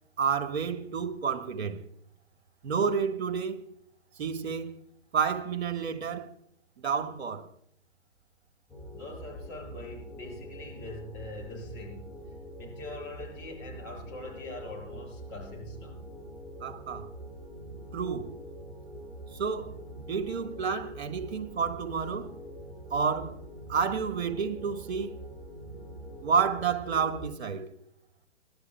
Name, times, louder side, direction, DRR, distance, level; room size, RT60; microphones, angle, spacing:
voice 1, 0.2-1.8 2.6-3.6 4.2-4.7 5.1-6.3 6.8-7.4 16.6-17.1 17.9-18.3 19.4-19.7 20.1-22.3 22.9-23.3 23.7-25.1 26.2-27.7, right 6 dB, 55° right, 1.6 m, -30 dB
sound 1, 8.7-27.3, right 1 dB, ahead, 3.9 m, -44 dB
voice 2, 8.9-12.2 12.6-16.0, left 2 dB, 25° left, 6.8 m, -43 dB
29.5 x 12.5 x 2.2 m
figure-of-eight pair, 125°, 39 cm